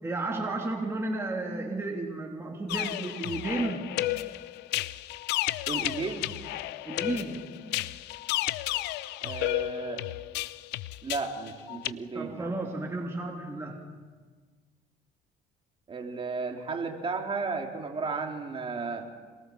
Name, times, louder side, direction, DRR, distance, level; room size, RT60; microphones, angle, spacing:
voice 1, 0.0-3.9 6.8-7.5 12.1-13.9, right 2 dB, 15° right, -1 dB, 3.1 m, -33 dB
sound 1, 2.7-11.9, left 16 dB, 90° left, 0.7 m, -32 dB
voice 2, 5.7-6.3 9.2-10.0 11.0-12.5 15.9-19.1, right 4 dB, 30° right, 2 dB, 3.6 m, -34 dB
27.0 x 23.0 x 7.2 m, 1.5 s
cardioid pair, 110°, 17 cm